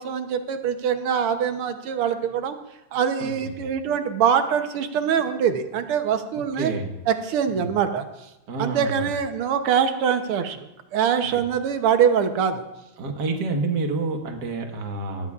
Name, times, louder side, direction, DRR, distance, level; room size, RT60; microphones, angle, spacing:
voice 1, 0.0-2.6 2.9-6.7 7.1-8.1 8.6-10.7 10.9-12.6, right 8 dB, 80° right, 8 dB, 1.8 m, -23 dB
voice 2, 3.2-3.7 6.6-6.9 7.5-7.7 8.5-9.1 13.0-15.3, right 3 dB, 50° right, 3 dB, 2.0 m, -28 dB
19.0 x 14.0 x 2.4 m, 0.97 s
omnidirectional pair, 2.4 m